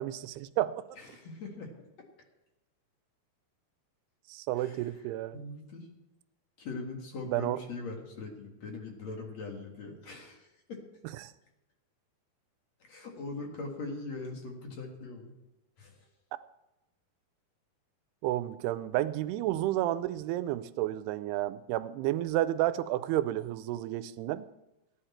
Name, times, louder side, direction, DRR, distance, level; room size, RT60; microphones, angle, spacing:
voice 1, 0.0-0.8 4.3-5.4 7.3-7.6 11.2-11.3 18.2-24.5, right 14 dB, 90° right, 14 dB, 2.7 m, -31 dB
voice 2, 0.9-1.7 4.5-5.0 5.3-5.9 6.6-10.8 12.8-15.3 15.8-16.1, left 3 dB, 50° left, 1 dB, 2.6 m, -41 dB
16.5 x 10.0 x 4.4 m, 0.97 s
omnidirectional pair, 4.5 m